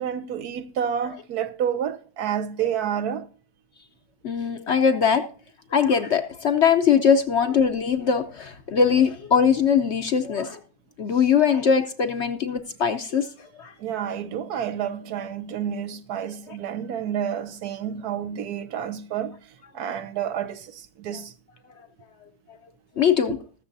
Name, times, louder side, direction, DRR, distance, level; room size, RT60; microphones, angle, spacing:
voice 1, 0.0-3.3 13.8-21.3, right 9 dB, 75° right, 1.3 m, -29 dB
voice 2, 4.2-5.2 5.7-10.6 11.0-13.3 13.6-13.7 23.0-23.4, left 7 dB, 55° left, 0.8 m, -21 dB
20.5 x 7.0 x 2.7 m
omnidirectional pair, 1.7 m